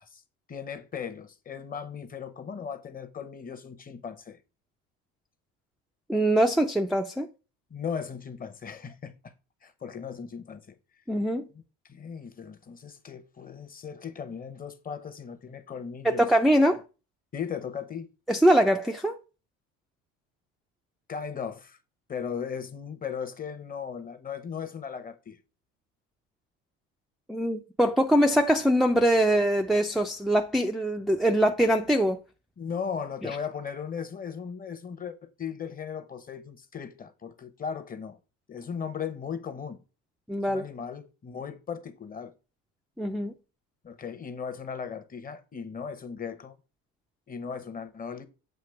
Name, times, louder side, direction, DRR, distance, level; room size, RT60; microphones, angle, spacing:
voice 1, 0.5-4.4 7.7-9.3 9.6-10.7 11.8-16.3 17.3-18.1 21.1-21.8 22.1-25.4 32.6-38.2 38.5-39.8 40.5-42.3 43.8-46.6 47.3-48.3, left 7 dB, 25° left, 0.9 m, -37 dB
voice 2, 6.1-7.3 11.1-11.5 16.0-16.8 18.3-19.2 27.3-32.2 33.2-33.4 40.3-40.7 43.0-43.3, right 1 dB, ahead, 0.4 m, -23 dB
7.7 x 2.9 x 5.7 m
cardioid pair, 110°, 33 cm